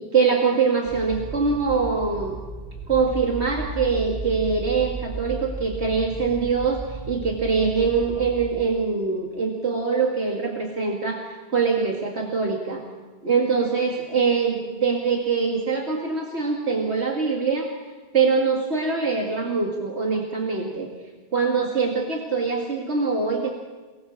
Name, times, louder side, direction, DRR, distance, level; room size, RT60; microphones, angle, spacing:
voice 1, 0.1-2.4 2.9-12.8 13.2-17.7 18.1-20.9 21.3-23.5, right 5 dB, 80° right, 1 dB, 2.5 m, -23 dB
sound 1, 0.9-8.5, right 3 dB, 25° right, 6.8 m, -35 dB
28.0 x 20.0 x 7.2 m, 1.3 s
omnidirectional pair, 1.1 m